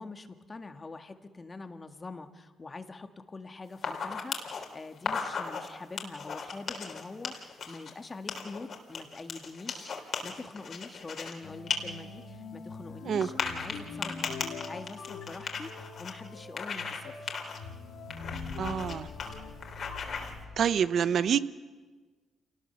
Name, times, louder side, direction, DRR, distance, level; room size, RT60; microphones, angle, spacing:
voice 1, 0.0-17.4, left 3 dB, 25° left, 7 dB, 1.8 m, -44 dB
sound 1, 3.7-4.6 5.0-5.7 6.0-7.9 8.3-11.3 11.7-11.8 12.1-12.2 13.2-16.1 16.6-17.0 17.3-17.6 18.1-18.9 19.2-19.3 19.6-20.3, left 5 dB, 55° left, 3.7 m, -36 dB
sound 2, 11.4-20.7, left 4 dB, 80° left, 2.9 m, -43 dB
voice 2, 18.6-19.1 20.6-21.4, right 8 dB, 60° right, 15 dB, 0.8 m, -26 dB
28.0 x 19.0 x 7.0 m, 1.4 s
cardioid pair, 90°, 0 cm